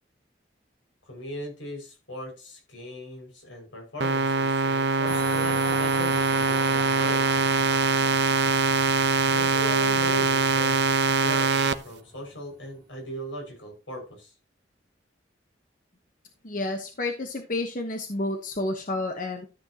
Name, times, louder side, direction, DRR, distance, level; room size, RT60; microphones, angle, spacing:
voice 1, 1.0-7.4 9.3-14.3, equal, 85° left, 2 dB, 5.8 m, -38 dB
sound 1, 4.0-11.7, right 4 dB, 65° right, 0.8 m, -23 dB
sound 2, 5.1-12.7, right 1 dB, 5° left, 3.1 m, -41 dB
voice 2, 16.4-19.5, left 2 dB, 45° left, 4 dB, 1.1 m, -30 dB
13.0 x 8.1 x 2.9 m, 0.31 s
head